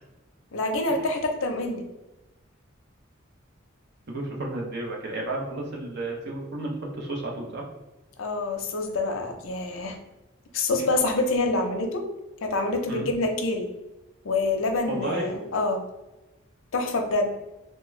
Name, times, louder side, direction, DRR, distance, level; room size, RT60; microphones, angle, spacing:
voice 1, 0.5-1.8 8.2-10.0 10.5-12.0 12.4-13.7 14.2-15.8 16.7-17.3, left 2 dB, 75° left, 4 dB, 0.5 m, -26 dB
voice 2, 4.1-7.6 12.9-13.1 14.9-15.3, right 1 dB, 55° right, 0 dB, 0.7 m, -32 dB
3.4 x 2.2 x 3.1 m, 1.1 s
head